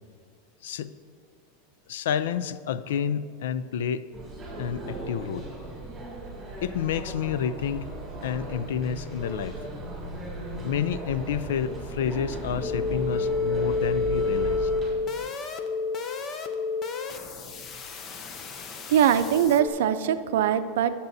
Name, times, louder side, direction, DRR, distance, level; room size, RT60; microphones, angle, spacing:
voice 1, 1.9-4.0 4.6-5.5 6.6-7.9 8.2-9.6 10.6-14.7, left 8 dB, 85° left, 14 dB, 0.4 m, -29 dB
sound 1, 4.1-14.9, right 2 dB, 10° right, 2.3 m, -37 dB
sound 2, 12.6-19.7, left 4 dB, 25° left, 0.6 m, -30 dB
voice 2, 18.9-20.9, right 9 dB, 75° right, 10 dB, 0.5 m, -22 dB
18.5 x 6.8 x 2.7 m, 2.2 s
supercardioid pair, 165°, 0 cm